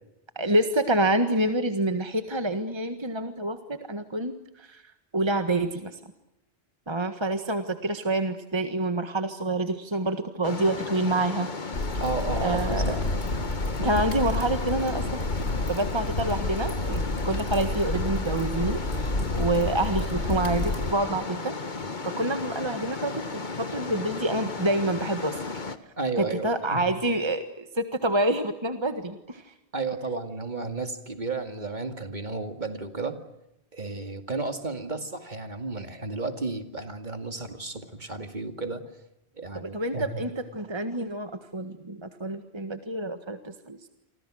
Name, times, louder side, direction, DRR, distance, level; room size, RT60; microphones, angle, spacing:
voice 1, 0.3-4.8 5.1-6.0 6.9-11.5 12.4-13.0 13.8-15.0 15.7-21.5 22.0-23.2 23.6-25.4 26.2-29.4 39.5-43.9, right 1 dB, 25° right, 8 dB, 1.7 m, -27 dB
sound 1, 10.4-25.8, left 3 dB, 45° left, 1.7 m, -35 dB
sound 2, 11.7-20.9, left 2 dB, 90° left, 3.4 m, -30 dB
voice 2, 12.0-13.0 26.0-27.0 29.7-33.2 33.7-38.8 39.4-40.3, right 3 dB, 45° right, 7 dB, 2.5 m, -33 dB
29.0 x 25.0 x 6.4 m, 0.87 s
omnidirectional pair, 1.1 m